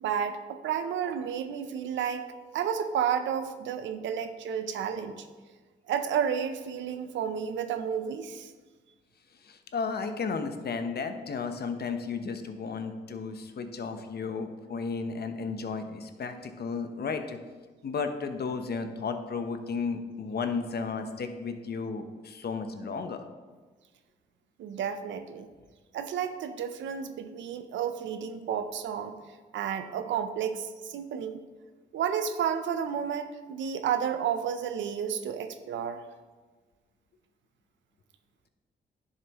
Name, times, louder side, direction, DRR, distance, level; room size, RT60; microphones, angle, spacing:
voice 1, 0.0-5.3 5.9-8.5 24.6-25.5 25.9-31.4 31.9-36.0, right 8 dB, 85° right, 10 dB, 0.6 m, -31 dB
voice 2, 9.4-17.4 17.8-23.2, left 5 dB, 60° left, 8 dB, 0.9 m, -33 dB
10.5 x 6.7 x 3.0 m, 1.4 s
supercardioid pair, 55°, 19 cm